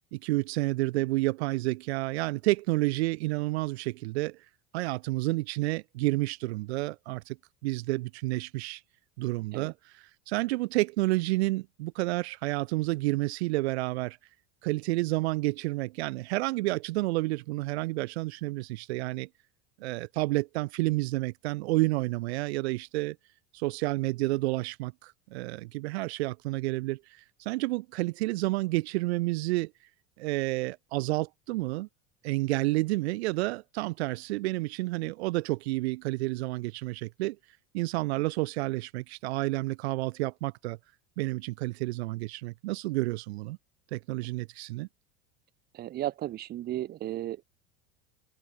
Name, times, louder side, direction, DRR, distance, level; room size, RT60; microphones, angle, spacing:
voice 1, 0.1-4.4 4.7-7.4 7.6-8.8 9.2-14.2 14.6-19.3 19.8-23.2 23.5-29.7 30.2-31.9 32.2-37.4 37.7-40.8 41.2-43.6 43.9-44.9, right 21 dB, 80° right, 1.8 m, -30 dB
voice 2, 45.7-47.4, right 13 dB, 30° right, 1.7 m, -34 dB
supercardioid pair, 165°, 32 cm